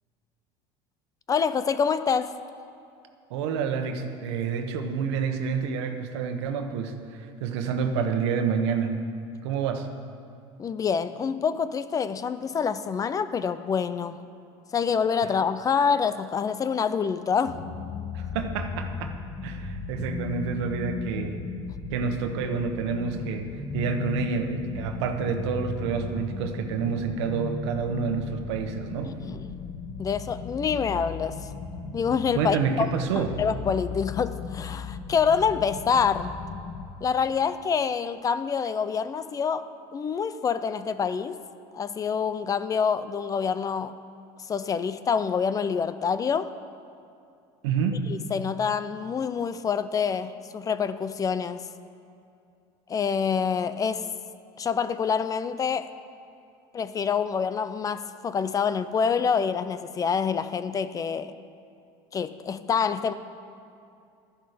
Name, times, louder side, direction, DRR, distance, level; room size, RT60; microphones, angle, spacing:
voice 1, 1.3-2.3 10.6-14.2 14.7-17.6 29.0-29.5 30.0-31.5 31.9-32.9 33.2-36.3 37.0-39.7 39.9-41.4 41.7-43.9 44.5-46.5 48.1-51.6 52.9-54.1 54.6-55.9 56.7-61.3 62.1-63.1, left 6 dB, 25° left, 13 dB, 0.4 m, -26 dB
voice 2, 3.3-8.9 9.4-9.9 18.1-19.1 19.4-21.4 21.9-29.1 32.4-33.3 47.6-48.0, right 6 dB, 90° right, 5 dB, 1.2 m, -28 dB
sound 1, 17.5-36.9, left 5 dB, 55° left, 1.2 m, -36 dB
12.0 x 10.5 x 5.1 m, 2.5 s
supercardioid pair, 125°, 14 cm